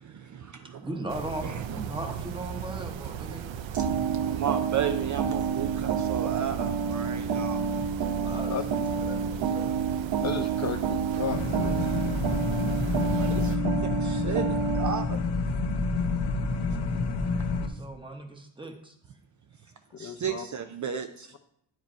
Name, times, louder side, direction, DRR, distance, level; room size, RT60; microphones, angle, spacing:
voice 1, 0.0-0.9 1.4-2.2 3.5-7.7 12.7-12.8 13.2-15.2 20.0-21.3, right 7 dB, 45° right, 0.4 m, -34 dB
voice 2, 0.8-3.5 8.2-8.5 8.9-9.7 17.7-18.9, right 1 dB, 10° right, 0.9 m, -38 dB
sound 1, 1.1-13.6, right 8 dB, 85° right, 0.6 m, -37 dB
sound 2, 3.8-15.0, right 6 dB, 60° right, 0.8 m, -29 dB
voice 3, 10.2-11.9 19.9-20.4, left 6 dB, 40° left, 0.6 m, -34 dB
sound 3, 11.3-17.7, left 3 dB, 60° left, 1.0 m, -28 dB
9.5 x 5.0 x 4.4 m
wide cardioid pair, 150°, 45 cm